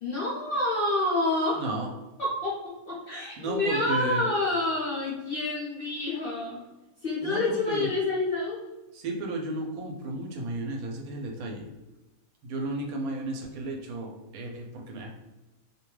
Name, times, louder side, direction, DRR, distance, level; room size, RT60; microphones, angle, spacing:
voice 1, 0.0-1.6 2.2-2.5 2.9-6.6 7.0-8.6, left 2 dB, 60° left, -5 dB, 0.6 m, -28 dB
voice 2, 1.6-1.9 3.4-4.3 7.2-7.9 8.9-11.7 12.4-15.1, right 2 dB, 85° right, 1 dB, 1.1 m, -33 dB
2.7 x 2.2 x 3.1 m, 1.1 s
omnidirectional pair, 1.5 m